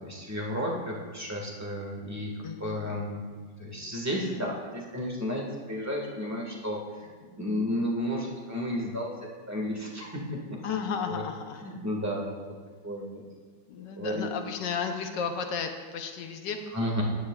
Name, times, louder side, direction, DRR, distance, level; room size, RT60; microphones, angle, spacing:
voice 1, 0.0-2.3 2.6-3.2 3.6-9.1 9.5-10.6 11.1-11.2 11.6-12.4 12.8-13.1 14.0-14.3 16.7-17.0, equal, 10° right, -2 dB, 1.5 m, -32 dB
voice 2, 2.4-3.1 10.6-11.7 13.7-16.8, left 6 dB, 70° left, 5 dB, 1.4 m, -34 dB
14.5 x 9.8 x 2.4 m, 1.5 s
omnidirectional pair, 2.1 m